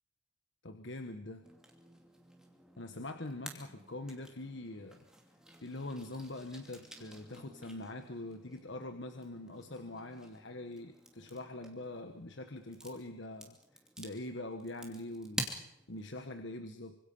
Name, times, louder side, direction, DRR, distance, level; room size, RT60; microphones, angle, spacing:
voice 1, 0.6-1.4 2.8-5.0 5.6-15.6 15.9-17.0, left 2 dB, 60° left, 7 dB, 1.4 m, -43 dB
sound 1, 1.4-16.1, right 1 dB, 5° right, 2.7 m, -49 dB
26.0 x 25.5 x 5.6 m, 0.81 s
head